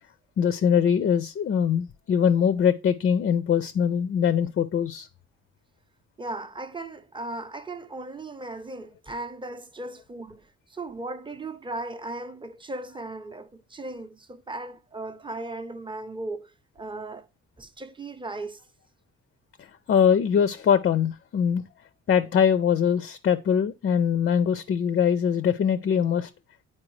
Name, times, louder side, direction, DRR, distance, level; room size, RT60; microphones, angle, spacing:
voice 1, 0.4-5.1 19.9-21.6 22.1-26.3, left 8 dB, 40° left, 0.4 m, -22 dB
voice 2, 6.2-17.3 17.6-18.6, right 2 dB, 15° right, 0.6 m, -37 dB
8.7 x 4.4 x 3.1 m
cardioid pair, 90°, 30 cm